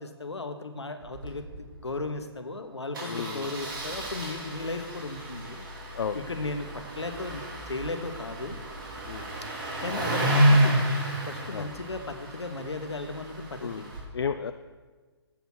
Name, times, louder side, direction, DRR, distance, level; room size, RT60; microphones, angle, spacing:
voice 1, 0.0-5.6 6.1-8.6 9.4-9.5 9.8-10.8 11.2-13.9, left 3 dB, 85° left, 8 dB, 1.1 m, -36 dB
Engine starting, 1.0-1.3 1.5-1.6 1.9-2.0 2.9-14.0, right 1 dB, 50° right, 2.6 m, -30 dB
voice 2, 3.1-3.5 5.9-6.2 9.0-9.3 11.5-11.7 13.6-14.5, left 6 dB, 70° left, 8 dB, 0.4 m, -33 dB
8.0 x 7.3 x 6.1 m, 1.4 s
figure-of-eight pair, 135°, 14 cm